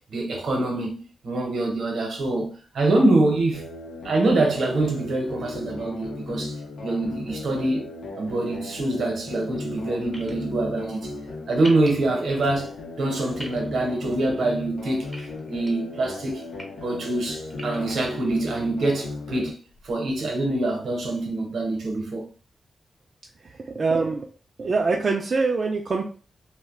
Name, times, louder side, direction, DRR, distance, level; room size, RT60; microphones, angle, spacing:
voice 1, 0.1-3.7 4.0-7.8 8.2-11.1 11.5-12.7 13.0-15.1 15.5-16.4 16.8-19.5 19.8-22.3, right 2 dB, 75° right, 0.8 m, -25 dB
sound 1, 3.5-19.5, left 2 dB, 90° left, 0.7 m, -37 dB
sound 2, 10.1-10.3 11.6-11.9 13.4-13.6 15.1-15.7 16.3-16.6 17.5-17.9, equal, 5° left, 0.7 m, -39 dB
voice 2, 23.4-24.3 24.6-26.0, right 4 dB, 40° right, 0.4 m, -24 dB
2.4 x 2.1 x 3.5 m
wide cardioid pair, 150°, 0 cm